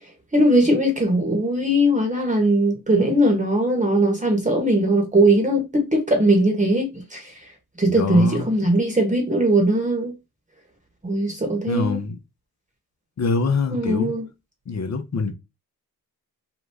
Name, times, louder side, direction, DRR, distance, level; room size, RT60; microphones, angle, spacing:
voice 1, 0.3-7.3 7.8-10.1 11.0-12.0 13.7-14.2, right 1 dB, 20° right, 1.1 m, -20 dB
voice 2, 7.9-8.5 11.7-12.2 13.2-14.1 14.7-15.3, left 4 dB, 40° left, 0.9 m, -24 dB
2.8 x 2.3 x 3.4 m
supercardioid pair, 55°, 40 cm